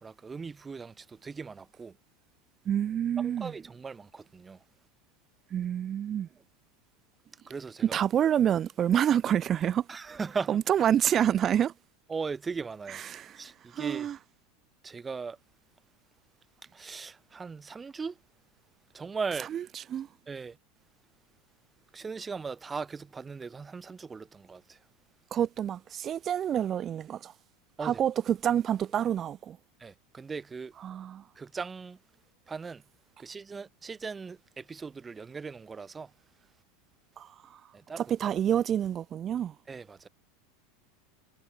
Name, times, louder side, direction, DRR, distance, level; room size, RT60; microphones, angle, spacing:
voice 1, 0.0-2.0 3.2-4.6 7.5-8.0 9.9-10.5 12.1-13.0 13.4-14.1 14.8-15.4 16.7-18.2 18.9-19.5 20.3-20.6 21.9-24.8 27.8-28.0 29.8-30.7 31.4-32.0 32.5-32.8 33.2-36.1 37.7-38.0 39.7-40.1, right 5 dB, 20° right, 3.8 m, -38 dB
voice 2, 2.7-3.5 5.5-6.3 7.8-9.9 10.5-11.7 12.9-13.4 13.7-14.2 19.5-20.1 25.3-27.3 27.8-29.6 30.8-31.2 37.2-37.6 38.0-39.5, right 9 dB, 35° right, 3.5 m, -28 dB
hypercardioid pair, 85°, 0 cm